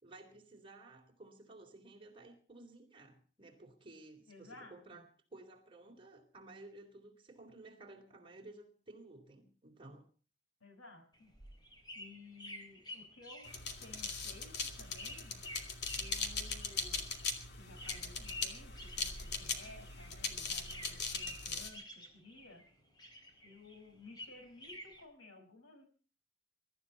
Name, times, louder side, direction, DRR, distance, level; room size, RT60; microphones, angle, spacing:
voice 1, 0.0-10.1, right 2 dB, 25° right, 3.7 m, -55 dB
voice 2, 4.3-5.0 10.6-11.3 11.9-15.4 16.0-17.1 17.5-22.6 23.4-25.9, left 3 dB, 90° left, 5.4 m, -56 dB
sound 1, 11.1-20.2 20.4-22.7 23.0-25.0, left 1 dB, 20° left, 4.3 m, -51 dB
sound 2, 13.5-21.7, left 4 dB, 55° left, 2.6 m, -40 dB
23.0 x 13.5 x 4.2 m
head